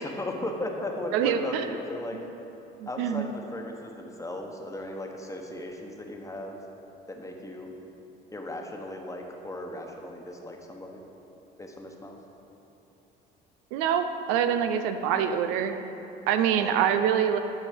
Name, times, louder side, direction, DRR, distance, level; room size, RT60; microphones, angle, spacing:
voice 1, 0.0-2.2 2.9-6.6 7.1-7.7 8.3-11.0 11.6-12.2 16.5-17.0, left 1 dB, 15° left, 2 dB, 1.1 m, -37 dB
voice 2, 1.1-1.7 2.8-3.2 13.7-15.8 16.3-17.4, right 8 dB, 85° right, 8 dB, 0.5 m, -25 dB
11.0 x 4.2 x 5.2 m, 3.0 s
supercardioid pair, 75°, 21 cm